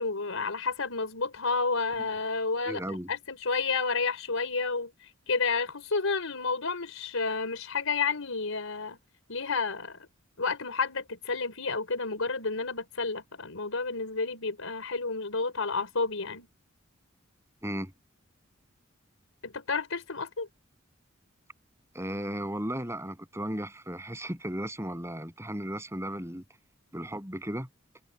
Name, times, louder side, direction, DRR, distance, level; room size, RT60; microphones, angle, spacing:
voice 1, 0.0-4.9 5.3-9.0 9.3-10.0 10.4-16.5 19.4-20.5, left 4 dB, 90° left, 4.0 m, -30 dB
voice 2, 2.7-3.1 17.6-17.9 21.9-26.4 26.9-27.7, right 1 dB, 15° right, 7.7 m, -35 dB
head